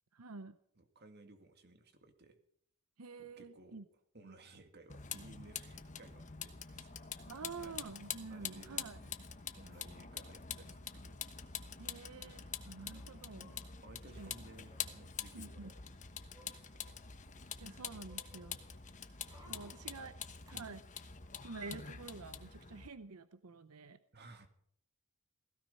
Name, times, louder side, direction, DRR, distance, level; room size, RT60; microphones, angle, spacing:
voice 1, 0.1-0.6 3.0-3.8 4.2-4.3 7.3-9.0 11.8-13.5 14.2-14.3 15.3-15.7 17.6-18.6 19.4-20.2 20.5-20.8 21.4-24.0, right 4 dB, 90° right, 12 dB, 0.8 m, -49 dB
voice 2, 0.8-2.4 3.2-3.8 4.1-7.1 7.6-7.8 8.3-9.2 9.6-11.2 13.5-15.7 16.4-17.0 19.4-19.8 20.5-20.7 24.1-24.5, right 2 dB, 50° right, 7 dB, 2.1 m, -58 dB
Vehicle, 4.9-22.9, left 7 dB, 35° left, 1.2 m, -46 dB
sound 1, 6.7-6.8 7.0-7.3 8.3-8.7 9.1-9.2 9.3-9.9 10.8-10.9 11.1-11.3 12.9-14.0 14.6-15.0 15.6-17.3 17.6-20.5 20.9-21.0, equal, 15° right, 4.4 m, -65 dB
16.5 x 15.5 x 5.6 m, 0.67 s
head